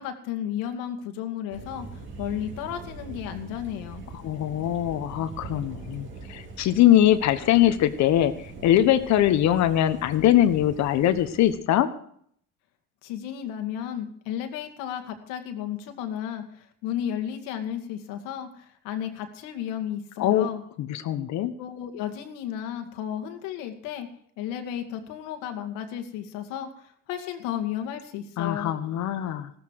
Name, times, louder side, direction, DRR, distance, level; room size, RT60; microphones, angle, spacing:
voice 1, 0.0-4.0 13.0-20.6 21.6-24.1 24.4-28.7, left 10 dB, 90° left, 6 dB, 2.2 m, -33 dB
Thunder, 1.5-11.5, right 3 dB, 35° right, 3.7 m, -42 dB
voice 2, 4.2-8.3 8.6-11.9 20.2-20.5 20.8-21.5 28.4-29.5, left 12 dB, 60° left, 11 dB, 1.3 m, -22 dB
16.0 x 13.5 x 4.8 m, 0.63 s
cardioid pair, 130°, 32 cm